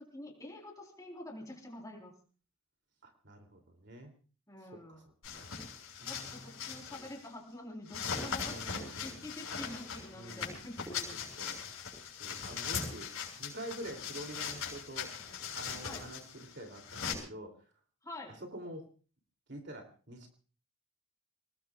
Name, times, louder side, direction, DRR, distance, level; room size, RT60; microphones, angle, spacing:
voice 1, 0.0-2.1 4.5-5.0 6.0-11.2 15.8-16.0 18.0-18.4, left 1 dB, 15° left, 1 dB, 3.9 m, -47 dB
voice 2, 3.0-4.1 4.7-5.0 5.3-5.5 6.0-6.9 8.0-9.1 10.1-10.6 11.4-11.7 12.2-13.1 13.4-15.1 15.5-17.5 18.3-18.9 19.5-20.3, right 1 dB, 55° right, 4 dB, 2.8 m, -47 dB
sound 1, 5.2-7.3 7.9-17.1, left 6 dB, 75° left, 6.4 m, -40 dB
28.0 x 19.5 x 2.4 m, 0.37 s
head